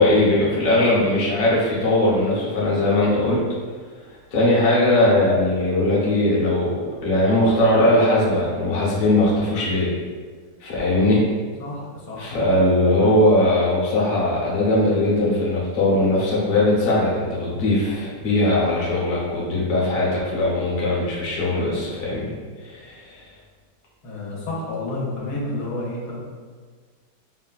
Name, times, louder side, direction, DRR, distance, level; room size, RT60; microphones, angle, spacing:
voice 1, 0.0-3.4 4.1-9.9 10.6-11.2 12.1-22.3 22.6-23.2, left 1 dB, 55° left, -6 dB, 1.0 m, -20 dB
voice 2, 11.6-12.3 24.0-26.2, left 2 dB, 80° left, -5 dB, 1.3 m, -30 dB
3.9 x 2.1 x 2.3 m, 1.5 s
omnidirectional pair, 1.7 m